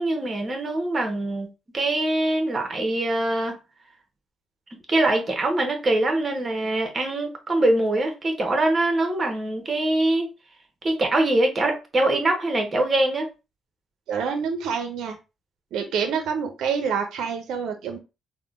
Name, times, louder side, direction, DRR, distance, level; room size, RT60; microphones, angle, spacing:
voice 1, 0.0-1.5 1.7-3.6 4.9-10.3 10.8-13.3, right 2 dB, 30° right, 0.9 m, -23 dB
voice 2, 14.1-15.2 15.7-18.0, right 6 dB, 80° right, 0.5 m, -27 dB
3.5 x 2.1 x 2.4 m
cardioid pair, 90°, 0 cm